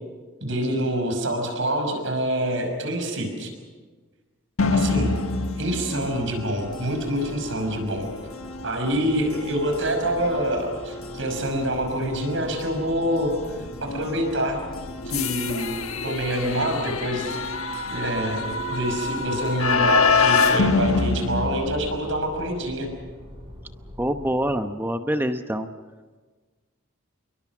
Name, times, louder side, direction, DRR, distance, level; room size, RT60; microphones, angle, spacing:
voice 1, 0.4-3.5 4.7-5.2 5.6-8.1 8.6-13.4 13.8-14.6 15.1-17.4 17.9-22.9, right 1 dB, 65° right, 4 dB, 5.8 m, -26 dB
sound 1, 4.6-22.3, left 4 dB, 85° left, 1.5 m, -27 dB
sound 2, 5.9-24.5, equal, 25° right, 4.4 m, -44 dB
voice 2, 24.0-25.7, right 1 dB, 10° right, 7 dB, 0.8 m, -25 dB
28.5 x 23.0 x 6.1 m, 1.4 s
head